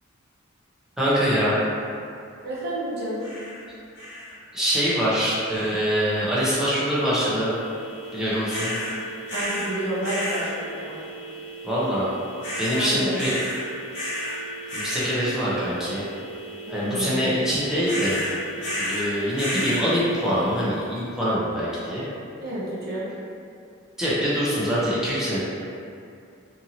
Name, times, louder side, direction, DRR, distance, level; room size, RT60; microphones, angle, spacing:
voice 1, 1.0-1.6 4.5-7.6 8.1-8.7 11.6-12.1 12.6-13.4 14.7-16.0 16.7-18.2 18.7-22.1 24.0-25.4, equal, 5° right, -10 dB, 0.6 m, -24 dB
voice 2, 2.4-3.3 9.3-11.0 12.7-13.2 16.7-17.4 22.4-23.1, right 1 dB, 50° right, -7 dB, 0.8 m, -30 dB
sound 1, 3.2-3.6 3.9-4.3 4.7-5.1 5.5-5.9 8.5-8.9 9.3-9.7 10.0-10.5 12.4-12.9 13.2-13.6 13.9-14.4 14.7-15.1 17.8-19.1 19.3-19.8, left 1 dB, 60° left, 1.0 m, -31 dB
sound 2, 5.5-20.7, right 3 dB, 85° right, 0.4 m, -40 dB
2.8 x 2.6 x 2.6 m, 2.5 s
head